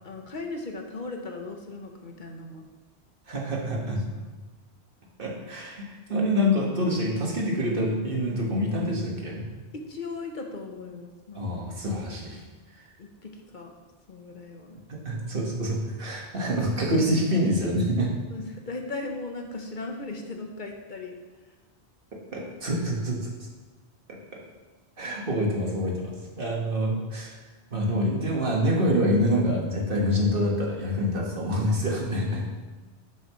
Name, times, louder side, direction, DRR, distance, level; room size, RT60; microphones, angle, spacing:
voice 1, 0.0-2.6 3.9-4.3 9.7-11.5 13.0-13.7 14.1-14.8 18.3-21.2, left 3 dB, 45° left, 2 dB, 1.2 m, -37 dB
voice 2, 3.3-4.0 5.2-9.5 11.3-12.4 14.9-18.1 22.3-23.3 25.0-27.3 27.7-32.5, equal, 55° right, -2 dB, 1.9 m, -26 dB
11.0 x 7.3 x 3.2 m, 1.3 s
omnidirectional pair, 1.1 m